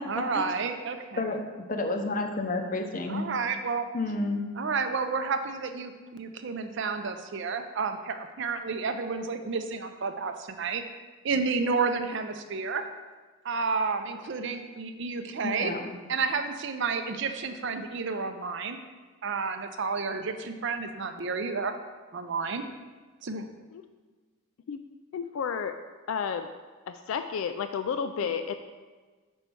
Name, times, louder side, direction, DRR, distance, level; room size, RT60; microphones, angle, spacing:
voice 1, 0.1-1.4 3.1-3.9 4.6-10.8 11.2-12.8 13.4-15.7 16.1-18.8 19.2-21.7 22.1-22.7 23.2-23.5, right 4 dB, 55° right, 8 dB, 0.5 m, -31 dB
voice 2, 1.7-3.3 3.9-4.4 15.4-15.9, left 2 dB, 40° left, 4 dB, 0.6 m, -30 dB
voice 3, 25.1-25.8 26.1-26.5 26.9-28.5, left 6 dB, 70° left, 8 dB, 0.3 m, -31 dB
5.4 x 4.4 x 6.1 m, 1.4 s
head